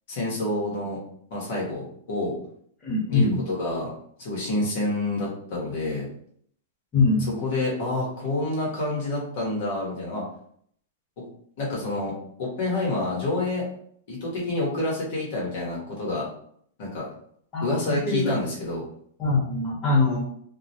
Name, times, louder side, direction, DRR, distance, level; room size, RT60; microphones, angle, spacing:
voice 1, 0.1-1.0 1.3-2.3 3.1-3.9 4.2-6.1 7.4-10.2 11.6-13.7 14.1-16.3 16.8-17.0 17.6-18.8, left 2 dB, 60° left, -4 dB, 1.0 m, -28 dB
voice 2, 2.8-3.4 6.9-7.3 17.5-18.4 19.2-20.2, left 3 dB, 20° left, -6 dB, 1.0 m, -23 dB
2.2 x 2.0 x 2.7 m, 0.64 s
hypercardioid pair, 135°, 0 cm